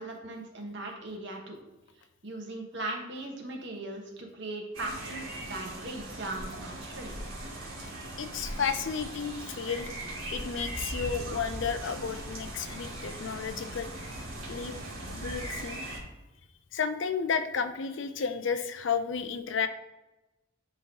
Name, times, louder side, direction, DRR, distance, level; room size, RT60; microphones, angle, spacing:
voice 1, 0.0-1.6 2.2-7.1, right 2 dB, 55° right, 1 dB, 1.4 m, -39 dB
sound 1, 4.7-16.0, right 1 dB, 80° right, 2.3 m, -39 dB
voice 2, 8.2-9.9 10.3-13.9 14.5-14.8 15.1-15.8 16.7-19.7, left 6 dB, 65° left, 9 dB, 0.6 m, -32 dB
10.5 x 3.9 x 2.9 m, 1.0 s
head